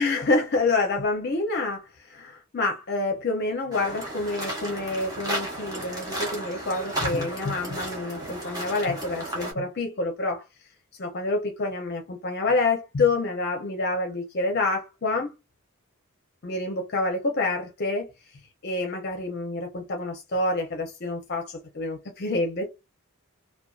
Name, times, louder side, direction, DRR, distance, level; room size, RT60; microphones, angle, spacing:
voice 1, 0.0-1.8 2.2-10.4 11.0-15.3 16.4-18.1 18.6-21.4 21.8-22.7, left 3 dB, 45° left, 0.5 m, -27 dB
sound 1, 3.7-9.5, right 1 dB, 15° right, 0.8 m, -33 dB
2.5 x 2.2 x 2.3 m
head